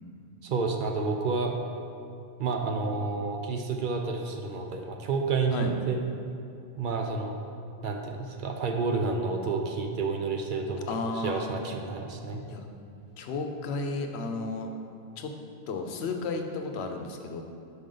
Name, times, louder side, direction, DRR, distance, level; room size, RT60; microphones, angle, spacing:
voice 1, 0.4-1.6 2.4-6.0 6.8-7.4 7.8-10.9 11.1-12.4, right 4 dB, 60° right, 3 dB, 0.6 m, -30 dB
voice 2, 10.9-11.5 12.5-12.7 13.2-14.7 15.2-15.3 15.7-17.4, left 3 dB, 90° left, 5 dB, 0.9 m, -33 dB
6.0 x 5.1 x 3.8 m, 2.5 s
omnidirectional pair, 1.1 m